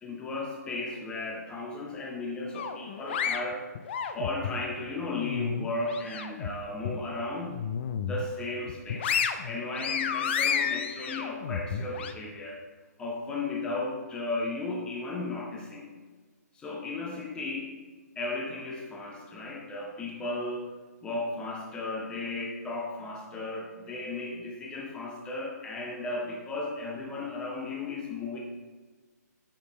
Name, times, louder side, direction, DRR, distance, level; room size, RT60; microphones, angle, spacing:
voice 1, 0.0-3.7 4.1-7.6 8.0-9.2 9.4-12.6 13.0-15.9 16.5-17.8 18.2-20.7 21.0-28.4, left 2 dB, 10° left, -2 dB, 0.9 m, -35 dB
sound 1, 2.5-4.6 5.0-6.5 6.8-7.0 7.5-8.3 8.7-12.1, left 7 dB, 40° left, 0.5 m, -31 dB
9.4 x 6.7 x 3.2 m, 1.3 s
hypercardioid pair, 150°, 9 cm